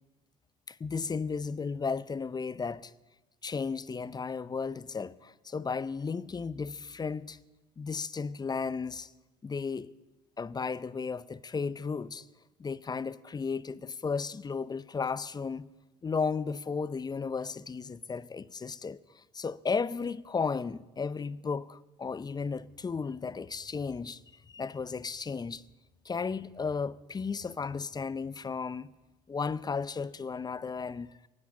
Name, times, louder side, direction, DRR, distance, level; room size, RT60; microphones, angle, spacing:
voice 1, 0.7-2.9 3.4-7.4 7.8-9.1 9.4-9.9 10.4-12.2 12.6-15.7 16.0-24.2 24.5-25.6 26.0-28.9 29.3-31.1, left 5 dB, 25° left, 0.6 m, -34 dB
17.0 x 8.5 x 8.4 m
supercardioid pair, 75°, 17 cm